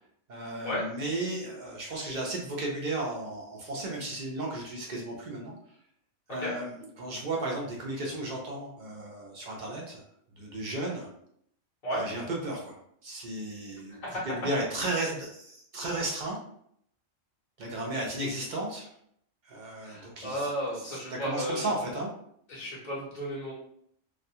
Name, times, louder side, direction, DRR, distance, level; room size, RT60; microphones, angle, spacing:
voice 1, 0.3-5.5 6.3-10.0 10.3-11.1 11.9-16.4 17.6-18.9 19.4-20.5 20.8-22.1, right 2 dB, 55° right, -2 dB, 0.5 m, -34 dB
voice 2, 19.8-21.7 22.5-23.5, equal, 45° left, -5 dB, 0.6 m, -33 dB
2.3 x 2.2 x 2.7 m, 0.68 s
omnidirectional pair, 1.3 m